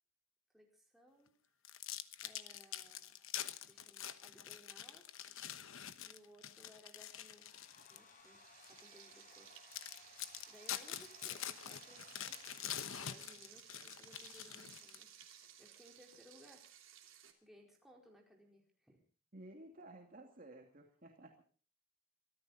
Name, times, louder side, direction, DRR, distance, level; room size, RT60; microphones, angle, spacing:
voice 1, 0.5-1.3 2.2-3.3 3.6-5.1 6.0-7.6 7.9-9.7 10.5-12.4 12.9-15.1 15.6-16.7 17.4-19.0, equal, ahead, -1 dB, 4.4 m, -63 dB
sound 1, 1.6-8.1 8.6-8.8 9.3-9.4 9.7-15.2, left 10 dB, 65° left, 1.1 m, -46 dB
Domestic sounds home sounds, 7.2-12.8, left 3 dB, 40° left, 4.5 m, -62 dB
Frying (food), 8.2-17.3, right 10 dB, 65° right, 3.1 m, -58 dB
voice 2, 19.3-21.3, right 1 dB, 40° right, 2 dB, 2.5 m, -54 dB
25.0 x 14.0 x 4.2 m, 0.40 s
head